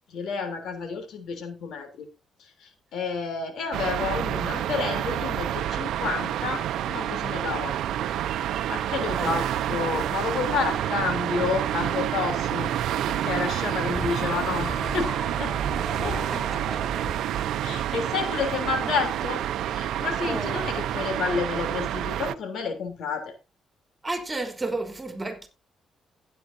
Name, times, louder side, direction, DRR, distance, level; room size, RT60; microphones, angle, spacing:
voice 1, 0.1-2.1 2.4-7.8 8.7-15.1 15.4-15.6 16.0-16.7 17.6-19.4 19.7-23.3, left 5 dB, 70° left, 3.4 m, -30 dB
sound 1, 3.7-22.3, right 11 dB, 80° right, 0.8 m, -28 dB
sound 2, 13.9-17.1, right 1 dB, ahead, 6.1 m, -35 dB
voice 2, 16.1-16.8 20.3-20.7 24.0-25.5, right 2 dB, 20° right, 3.4 m, -33 dB
15.5 x 9.4 x 2.8 m
cardioid pair, 90°, 0 cm